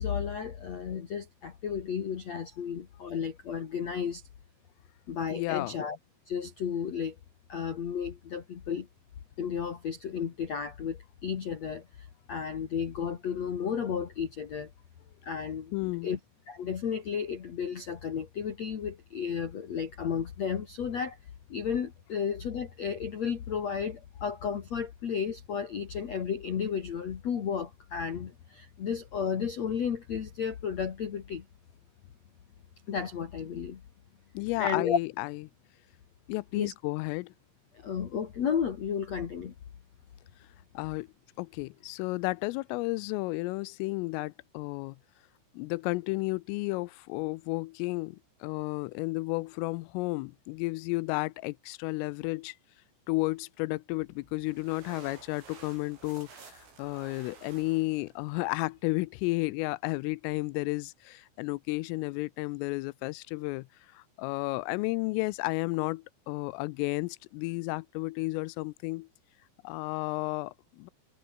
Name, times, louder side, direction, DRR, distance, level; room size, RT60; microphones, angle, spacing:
voice 1, 0.0-4.2 5.1-6.0 6.3-7.2 7.5-8.9 9.4-11.9 12.3-14.7 15.2-15.7 16.0-16.2 16.5-21.2 21.5-31.4 32.9-33.8 34.6-35.0 36.5-36.7 37.8-39.5, left 7 dB, 55° left, 1.9 m, -33 dB
voice 2, 5.3-5.7 15.7-16.1 34.3-35.4 36.3-37.3 40.7-41.1 41.4-45.0 45.5-52.6 53.1-63.7 63.9-69.1 69.6-70.9, left 23 dB, 85° left, 3.2 m, -32 dB
sound 1, 54.0-59.0, right 5 dB, 80° right, 10.5 m, -53 dB
omnidirectional pair, 5.9 m